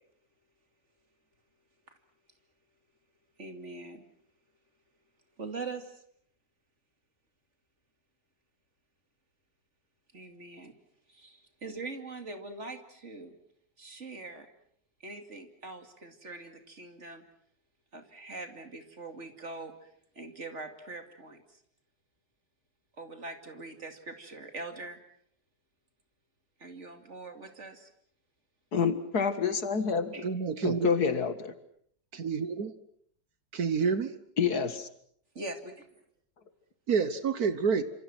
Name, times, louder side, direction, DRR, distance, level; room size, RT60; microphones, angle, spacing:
voice 1, 3.4-4.1 5.4-6.0 10.1-10.7 11.1-13.4 13.8-14.5 15.0-17.2 17.9-19.9 20.2-21.6 23.0-25.0 26.6-27.9 30.1-30.3 35.3-36.0, right 3 dB, 40° right, 6 dB, 2.9 m, -43 dB
voice 2, 28.7-30.1 30.6-31.5 34.4-34.9, left 6 dB, 60° left, 10 dB, 2.3 m, -28 dB
voice 3, 30.2-31.0 32.1-32.7 33.5-34.2 36.9-37.8, right 5 dB, 60° right, 12 dB, 1.7 m, -28 dB
28.5 x 26.5 x 6.1 m, 0.65 s
omnidirectional pair, 1.9 m